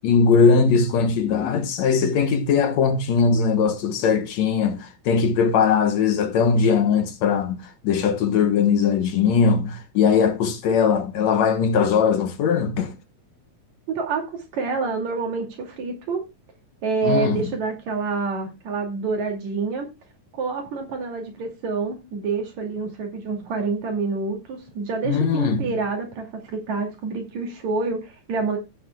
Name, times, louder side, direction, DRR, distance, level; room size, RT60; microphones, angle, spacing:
voice 1, 0.0-12.9 17.0-17.4 25.1-25.7, left 6 dB, 70° left, 2.1 m, -20 dB
voice 2, 13.9-16.2 16.8-19.9 20.4-28.6, right 4 dB, 65° right, 3.8 m, -27 dB
15.0 x 9.7 x 2.3 m
omnidirectional pair, 3.5 m